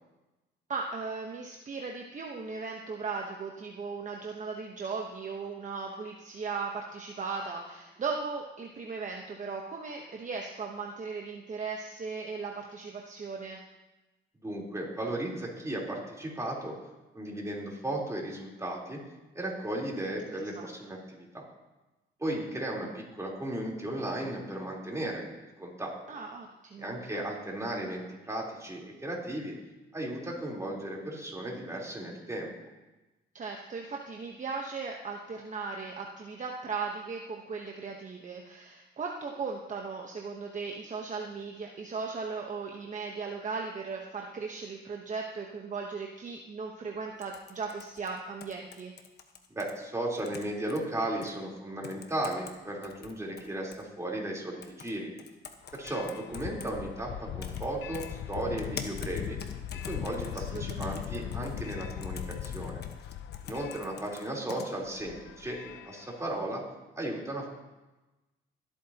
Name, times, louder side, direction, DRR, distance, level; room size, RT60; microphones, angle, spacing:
voice 1, 0.7-13.6 20.6-20.7 26.1-27.2 33.3-48.9 60.3-61.3, right 4 dB, 40° right, 1 dB, 1.1 m, -37 dB
voice 2, 14.4-16.7 17.1-19.0 19.3-21.4 22.2-25.2 25.6-25.9 26.8-29.5 29.9-32.5 49.5-55.1 55.7-59.4 59.9-62.8 63.4-66.6 67.0-67.5, right 1 dB, 15° right, -3 dB, 3.8 m, -35 dB
sound 1, 47.2-49.7 50.1-50.8 51.2-51.3 51.8-52.5 52.8-53.8 54.6-54.9 55.2-56.7 57.4-57.7 57.9-64.7, left 6 dB, 55° left, 1.3 m, -45 dB
sound 2, 55.6-66.4, left 10 dB, 70° left, 0.5 m, -40 dB
23.5 x 8.5 x 2.9 m, 1.1 s
cardioid pair, 90°, 20 cm